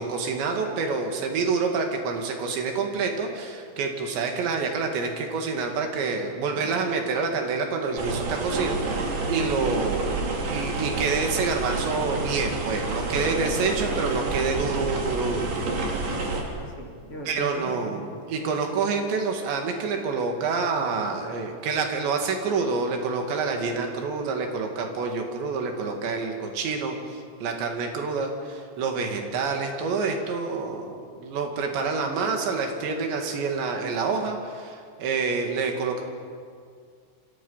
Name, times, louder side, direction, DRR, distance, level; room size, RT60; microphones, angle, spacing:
voice 1, 0.0-10.2 10.5-15.5 17.3-27.0 27.4-36.0, right 4 dB, 85° right, 3 dB, 4.6 m, -27 dB
sound 1, 8.0-16.4, right 3 dB, 60° right, 4.8 m, -29 dB
voice 2, 16.0-18.0 18.4-18.8, left 1 dB, 35° left, 0 dB, 3.5 m, -40 dB
29.0 x 26.5 x 5.7 m, 2.1 s
omnidirectional pair, 5.0 m